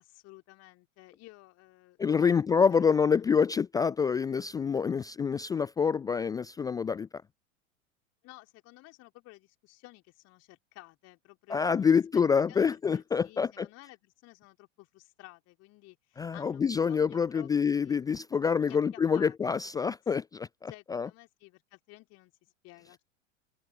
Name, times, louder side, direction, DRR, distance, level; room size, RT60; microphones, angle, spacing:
voice 1, 0.0-2.8 3.1-3.3 8.2-18.0 18.6-19.3 19.6-19.7 20.7-23.0, left 20 dB, 40° left, 3.5 m, -54 dB
voice 2, 2.0-7.1 11.5-13.7 16.2-21.1, left 6 dB, 10° left, 0.4 m, -27 dB
open air
figure-of-eight pair, 90°, 40 cm